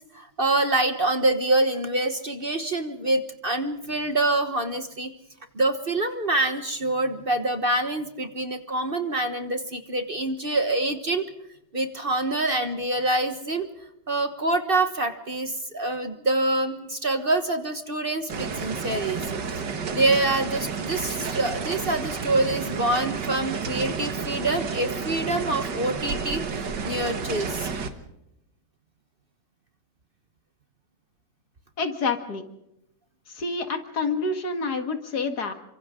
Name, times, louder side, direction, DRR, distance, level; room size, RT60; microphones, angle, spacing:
voice 1, 0.1-5.1 5.5-11.3 11.7-13.7 14.1-19.2 19.9-27.7, right 2 dB, 35° right, 8 dB, 1.4 m, -26 dB
sound 1, 18.3-27.9, right 5 dB, 85° right, 2.2 m, -31 dB
voice 2, 31.8-32.4 33.4-35.5, left 4 dB, 65° left, 7 dB, 2.5 m, -28 dB
29.0 x 25.0 x 3.8 m, 0.83 s
omnidirectional pair, 1.8 m